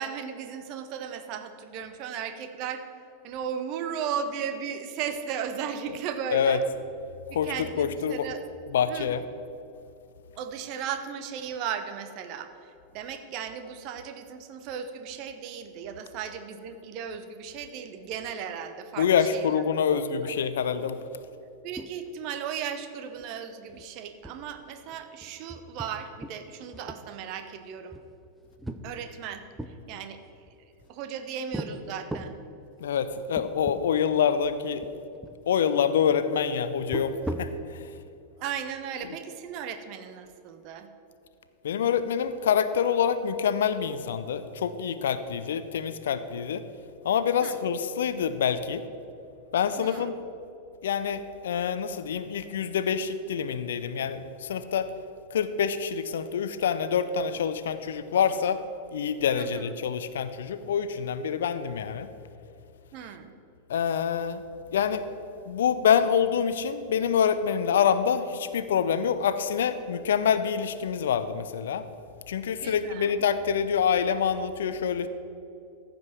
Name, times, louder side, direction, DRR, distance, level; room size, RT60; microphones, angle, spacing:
voice 1, 0.0-2.8 3.2-6.6 7.3-8.4 8.9-9.1 10.3-19.6 19.9-20.3 21.6-28.0 28.8-30.2 30.6-32.4 38.4-40.9 47.4-47.5 49.8-50.1 59.3-59.7 62.9-63.3 72.6-73.2, right 8 dB, 40° right, 8 dB, 0.9 m, -36 dB
voice 2, 7.3-8.3 8.7-9.2 19.0-21.0 32.8-34.8 35.5-37.9 39.1-39.2 41.6-46.6 47.0-48.8 49.5-50.1 50.8-54.9 55.3-58.6 58.9-62.1 63.7-64.4 64.7-65.0 65.5-71.8 72.3-75.1, left 7 dB, 60° left, 12 dB, 0.5 m, -26 dB
sound 1, 21.8-22.3 22.5-22.6 23.0-23.3 23.7-23.8 24.2-26.4 26.7-27.4 27.9-29.8 30.5-31.1 31.5-31.7 32.1-32.4 33.0-33.1 33.4-33.8 34.1-34.2 34.8-35.4 36.8-37.6, right 1 dB, 5° right, 0.6 m, -38 dB
15.0 x 5.3 x 6.0 m, 2.7 s
figure-of-eight pair, 90°, 0 cm